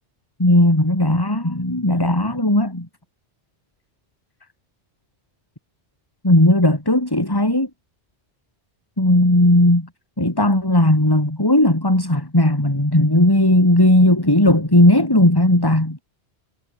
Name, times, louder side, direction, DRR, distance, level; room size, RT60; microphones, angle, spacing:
voice 1, 0.4-2.9 6.2-7.7 9.0-9.9 10.2-16.0, left 1 dB, 20° left, 3.5 m, -16 dB
omnidirectional pair, 1.2 m